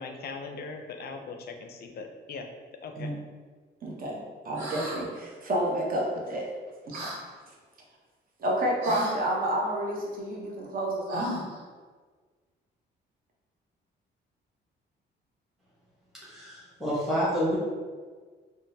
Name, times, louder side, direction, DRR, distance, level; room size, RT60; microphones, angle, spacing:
voice 1, 0.0-2.5 2.8-3.1, left 4 dB, 55° left, 5 dB, 0.4 m, -40 dB
voice 2, 3.8-6.5 6.9-7.1 8.4-11.3, right 1 dB, 45° right, -1 dB, 0.8 m, -29 dB
sound 1, 4.5-5.0 6.9-7.2 8.8-9.2 11.1-11.6, equal, 90° right, 1.0 m, -35 dB
voice 3, 16.2-17.6, equal, ahead, -9 dB, 1.0 m, -28 dB
3.7 x 2.1 x 2.6 m, 1.5 s
cardioid pair, 90°, 20 cm